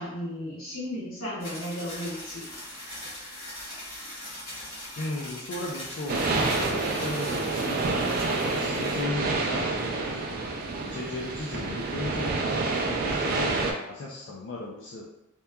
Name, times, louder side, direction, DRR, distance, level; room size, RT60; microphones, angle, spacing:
voice 1, 0.0-2.5, equal, 90° left, -8 dB, 1.2 m, -34 dB
sound 1, 1.4-9.0, left 1 dB, 45° left, 1.2 m, -40 dB
voice 2, 5.0-8.1 8.4-10.4 10.8-12.4 13.0-15.1, left 2 dB, 60° left, -4 dB, 0.3 m, -36 dB
sound 2, 6.1-13.7, right 3 dB, 45° right, 0.3 m, -28 dB
2.9 x 2.3 x 2.2 m, 0.90 s
head